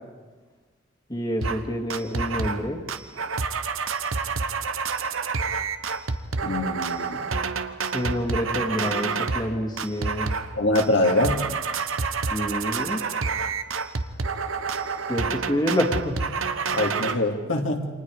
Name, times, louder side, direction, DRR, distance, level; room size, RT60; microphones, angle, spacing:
voice 1, 1.1-2.8 7.9-10.3 12.3-13.0 15.1-16.2, equal, 20° left, 2 dB, 2.3 m, -27 dB
sound 1, 1.4-1.6 1.9-2.6 2.9-9.5 9.8-10.5 10.8-17.2, right 4 dB, 80° right, 1.1 m, -28 dB
voice 2, 6.4-7.2 10.6-11.4 16.7-17.9, left 1 dB, 65° left, 1 dB, 2.7 m, -24 dB
29.0 x 26.5 x 4.8 m, 1.3 s
head